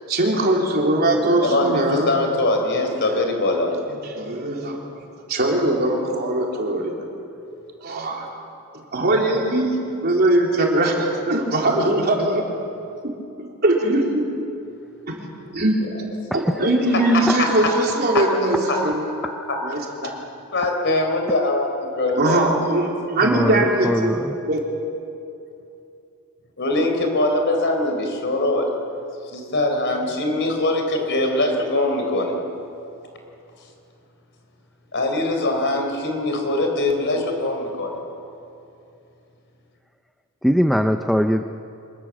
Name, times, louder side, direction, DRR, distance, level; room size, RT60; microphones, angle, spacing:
voice 1, 0.1-2.2 3.1-3.2 3.9-4.8 5.3-6.9 7.8-8.3 8.7-9.8 10.0-12.4 13.0-13.1 13.4-14.2 15.1-15.2 15.5-15.7 16.3-19.1 19.6-20.1 22.2-24.1 24.5-24.6, right 1 dB, 45° right, -1 dB, 3.6 m, -21 dB
voice 2, 1.4-3.7 16.6-16.7 18.7-18.8 20.5-21.7 22.0-22.5 26.6-28.7 29.3-32.4 34.9-38.0, left 2 dB, 55° left, 3 dB, 4.0 m, -22 dB
voice 3, 16.3-16.7 17.0-17.4 22.3-22.4 23.2-24.4 40.4-41.4, equal, ahead, 6 dB, 0.6 m, -22 dB
25.0 x 20.5 x 7.5 m, 2.7 s
head